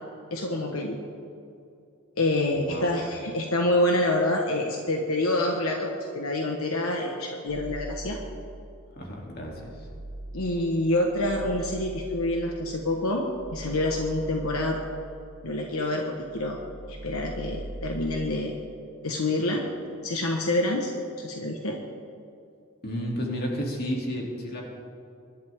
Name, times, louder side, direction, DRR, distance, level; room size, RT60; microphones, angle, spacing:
voice 1, 0.3-1.0 2.2-8.2 10.3-14.8 15.4-16.6 16.9-18.5 19.0-19.7 20.0-20.9 21.2-21.8, left 1 dB, 75° left, 1 dB, 1.3 m, -27 dB
voice 2, 2.5-2.9 9.0-9.5 22.8-24.6, equal, 45° left, -2 dB, 2.9 m, -31 dB
sound 1, 7.5-8.9 9.3-15.8 16.1-18.4, right 1 dB, 60° right, 0.8 m, -41 dB
24.5 x 11.5 x 3.6 m, 2.5 s
head